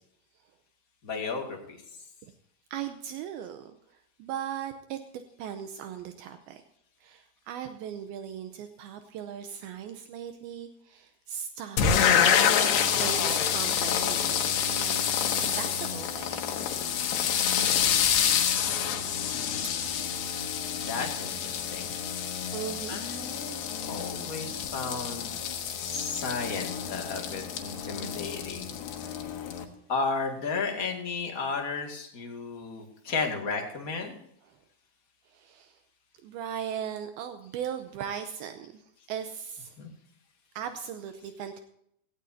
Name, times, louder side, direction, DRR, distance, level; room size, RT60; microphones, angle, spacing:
voice 1, 1.0-1.8 19.3-19.9 20.8-21.9 22.9-25.3 25.8-28.7 29.9-34.1 39.8-39.9, left 4 dB, 30° left, 2 dB, 1.8 m, -34 dB
voice 2, 2.7-6.6 7.0-15.1 15.3-16.5 17.4-17.6 18.3-18.5 19.6-19.7 22.5-23.0 34.5-34.6 35.3-35.8 36.2-39.8 40.5-41.6, right 9 dB, 80° right, 8 dB, 2.6 m, -39 dB
sound 1, 11.8-29.7, left 8 dB, 85° left, 3.4 m, -28 dB
17.0 x 15.0 x 2.7 m, 0.74 s
omnidirectional pair, 4.6 m